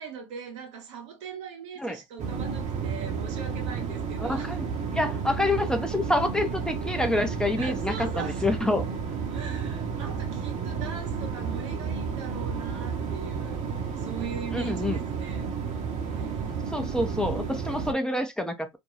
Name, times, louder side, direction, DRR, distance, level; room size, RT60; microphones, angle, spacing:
voice 1, 0.0-4.6 7.6-8.6 9.3-13.6 14.0-15.5 16.1-16.6, right 6 dB, 80° right, 1.0 m, -40 dB
sound 1, 2.2-17.9, right 6 dB, 50° right, 0.9 m, -32 dB
voice 2, 4.2-4.7 4.9-8.8 14.5-15.0 16.7-18.7, left 1 dB, 5° left, 0.6 m, -27 dB
2.6 x 2.2 x 3.1 m
hypercardioid pair, 70°, 15 cm